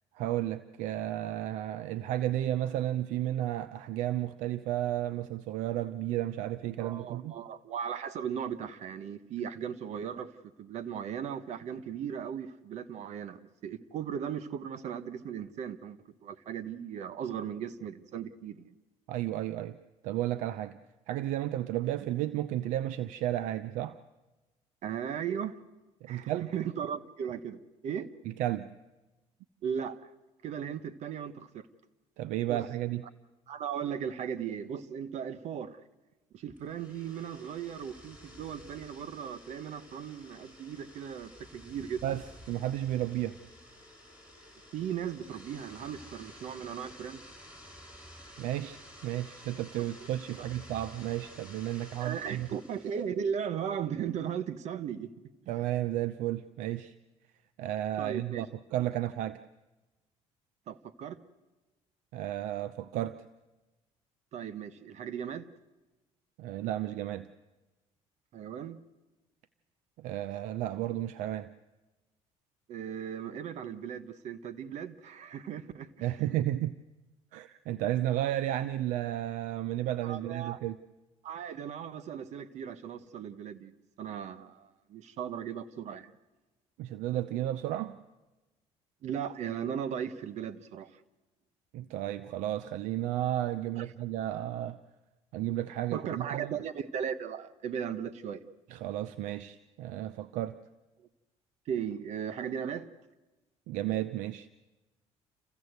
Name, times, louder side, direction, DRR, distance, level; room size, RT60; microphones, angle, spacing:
voice 1, 0.1-7.3 19.1-19.8 20.0-20.8 21.1-24.0 26.0-26.5 28.3-28.7 32.2-33.0 42.0-43.4 48.4-52.5 55.5-56.9 57.6-58.5 58.7-59.4 62.1-63.2 66.4-67.3 70.0-71.5 76.0-76.7 77.3-80.8 86.8-88.0 91.7-94.8 95.3-96.6 98.7-100.6 103.7-104.5, right 13 dB, 80° right, 14 dB, 0.6 m, -33 dB
voice 2, 6.8-10.3 10.6-18.7 24.8-25.6 26.1-28.1 29.6-30.0 30.4-31.7 32.5-32.6 33.5-35.8 36.3-42.2 44.7-47.2 52.0-55.1 55.4-55.5 58.0-58.4 60.7-61.2 64.3-65.5 68.3-68.8 72.7-76.1 80.0-80.6 81.2-86.1 89.0-90.9 93.8-93.9 95.9-98.4 101.7-102.9, right 8 dB, 65° right, 13 dB, 1.2 m, -37 dB
sound 1, 36.5-53.0, equal, 10° right, 5.5 m, -52 dB
28.5 x 15.0 x 8.1 m, 1.1 s
supercardioid pair, 90°, 13 cm